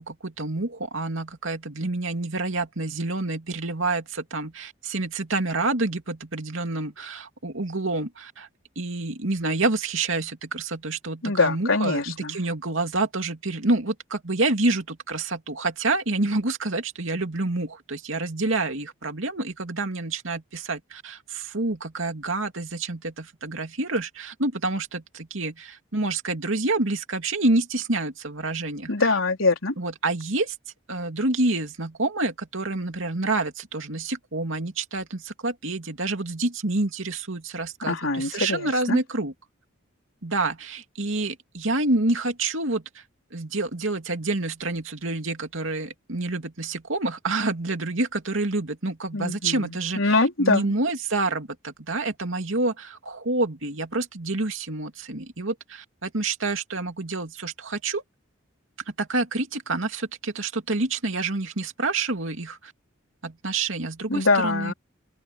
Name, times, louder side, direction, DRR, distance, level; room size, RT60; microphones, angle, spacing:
voice 1, 0.0-8.5 8.8-28.9 29.8-30.5 30.9-39.3 40.2-43.0 43.3-58.0 58.9-62.7 63.2-64.7, right 2 dB, 70° right, 2.7 m, -28 dB
voice 2, 11.2-12.4 28.9-29.7 37.8-39.0 49.1-50.7 64.1-64.7, left 3 dB, 75° left, 4.1 m, -23 dB
open air
head